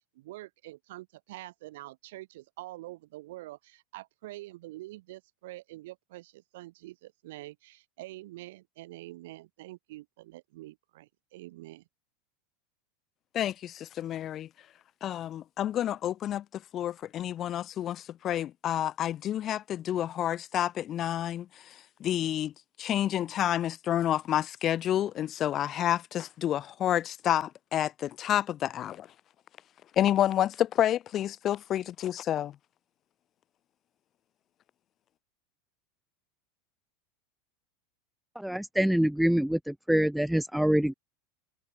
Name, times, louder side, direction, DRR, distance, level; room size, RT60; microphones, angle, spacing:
voice 1, 0.0-11.8, right 18 dB, 75° right, 2.8 m, -46 dB
voice 2, 13.3-14.5 15.0-22.5 22.8-29.1 30.0-32.5, left 11 dB, 40° left, 1.3 m, -29 dB
voice 3, 38.4-40.9, equal, ahead, 0.4 m, -25 dB
hypercardioid pair, 110°, 0 cm